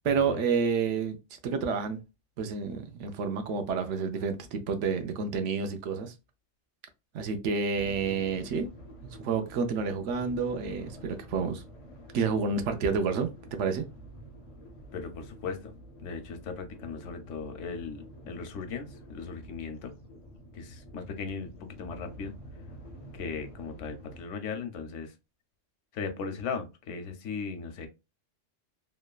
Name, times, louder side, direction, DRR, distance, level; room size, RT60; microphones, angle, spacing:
voice 1, 0.0-1.2 1.4-2.0 2.4-6.1 7.1-8.7 9.2-11.6 12.1-13.9, right 5 dB, 80° right, 0.9 m, -29 dB
sound 1, 7.7-24.3, equal, 50° left, 0.4 m, -48 dB
voice 2, 14.9-15.7 16.0-19.9 20.5-22.3 23.1-25.1 25.9-27.9, left 5 dB, 85° left, 0.9 m, -37 dB
3.0 x 2.1 x 2.3 m
omnidirectional pair, 1.2 m